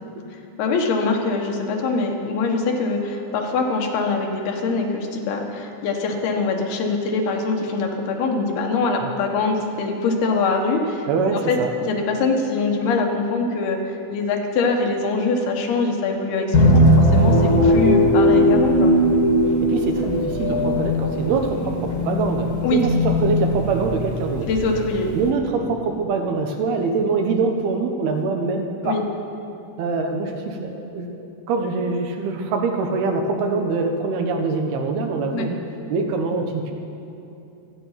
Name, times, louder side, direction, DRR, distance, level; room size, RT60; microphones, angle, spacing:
voice 1, 0.6-11.0 11.3-18.9 22.6-22.8 24.4-25.1 28.8-29.0 35.3-35.5, left 3 dB, 80° left, 2 dB, 3.4 m, -23 dB
voice 2, 11.1-11.7 17.5-17.6 19.7-24.5 25.1-29.0 29.8-31.1 31.5-35.6 35.9-36.7, right 4 dB, 80° right, 3 dB, 3.2 m, -24 dB
sound 1, 16.5-25.3, equal, 35° left, 1.5 m, -19 dB
24.5 x 9.3 x 5.8 m, 2.8 s
omnidirectional pair, 4.4 m